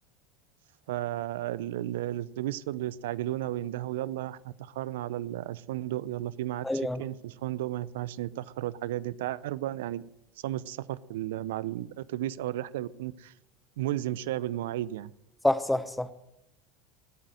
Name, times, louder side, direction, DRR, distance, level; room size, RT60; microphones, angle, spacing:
voice 1, 0.9-10.0 10.4-13.3 13.8-15.1, right 14 dB, 70° right, 0.6 m, -33 dB
voice 2, 6.6-7.0 15.4-16.1, left 1 dB, 5° left, 0.9 m, -27 dB
19.5 x 8.9 x 7.8 m
hypercardioid pair, 80°, 0 cm